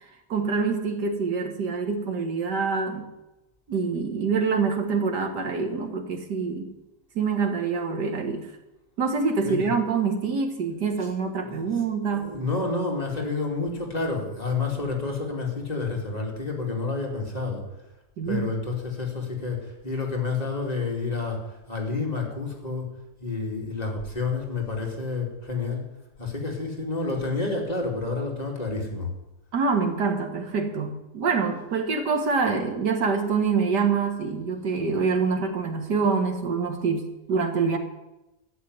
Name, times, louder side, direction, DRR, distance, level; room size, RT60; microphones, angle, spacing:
voice 1, 0.3-3.0 3.7-6.7 7.2-8.5 9.0-12.3 18.2-18.5 29.5-37.8, right 5 dB, 85° right, 5 dB, 2.2 m, -25 dB
voice 2, 12.1-17.7 18.3-22.9 23.2-25.8 26.2-29.1, left 3 dB, 25° left, -1 dB, 2.8 m, -29 dB
13.0 x 7.2 x 9.6 m, 0.96 s
omnidirectional pair, 1.8 m